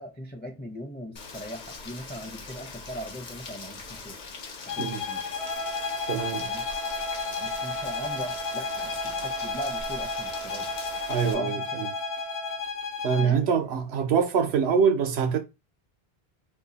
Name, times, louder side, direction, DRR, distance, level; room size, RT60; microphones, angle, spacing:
voice 1, 0.0-4.2 4.6-5.2 6.4-6.7 7.4-10.7 11.2-11.8 13.2-13.5, equal, 15° left, 0.4 m, -39 dB
Rain, 1.2-11.3, left 4 dB, 55° left, 0.7 m, -42 dB
sound 1, 4.7-13.4, left 5 dB, 90° left, 0.9 m, -33 dB
Trumpet, 5.3-12.6, right 7 dB, 45° right, 0.5 m, -38 dB
voice 2, 6.1-6.5 11.1-11.9 13.0-15.4, right 6 dB, 90° right, 1.0 m, -24 dB
2.7 x 2.6 x 3.9 m
omnidirectional pair, 1.0 m